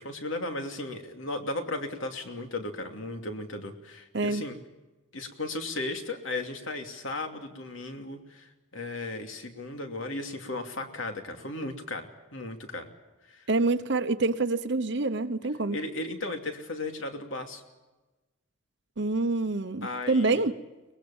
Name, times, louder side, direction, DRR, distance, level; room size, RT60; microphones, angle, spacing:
voice 1, 0.0-4.6 5.1-12.9 13.3-13.5 15.7-17.6 19.8-20.5, left 2 dB, 75° left, 2.7 m, -36 dB
voice 2, 13.5-15.8 19.0-20.5, right 3 dB, 60° right, 0.9 m, -26 dB
23.5 x 20.5 x 7.2 m
head